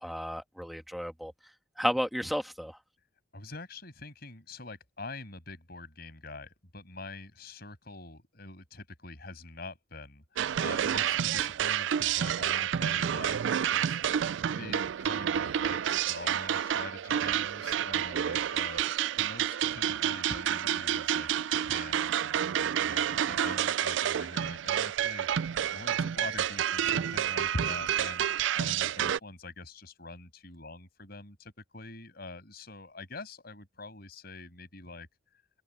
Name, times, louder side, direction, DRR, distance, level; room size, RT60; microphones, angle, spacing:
voice 1, 0.0-1.3 1.8-2.8, equal, ahead, 1.9 m, -32 dB
voice 2, 3.3-13.4 13.7-14.2 14.6-35.1, left 2 dB, 50° left, 7.0 m, -44 dB
sound 1, 10.4-29.2, right 9 dB, 65° right, 0.3 m, -29 dB
open air
head